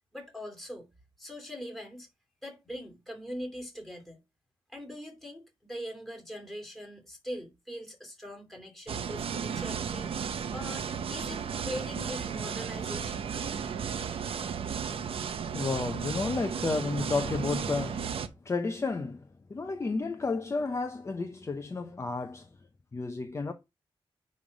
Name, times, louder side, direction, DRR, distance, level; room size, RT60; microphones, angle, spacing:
voice 1, 0.1-0.9 1.2-2.1 2.4-4.2 4.7-10.1 10.5-13.2, equal, 5° left, 2.5 m, -42 dB
sound 1, 8.9-18.3, right 7 dB, 90° right, 0.8 m, -34 dB
voice 2, 15.5-18.1 18.4-22.5 22.9-23.5, left 3 dB, 30° left, 0.7 m, -32 dB
9.6 x 3.2 x 5.2 m
wide cardioid pair, 120°, 9 cm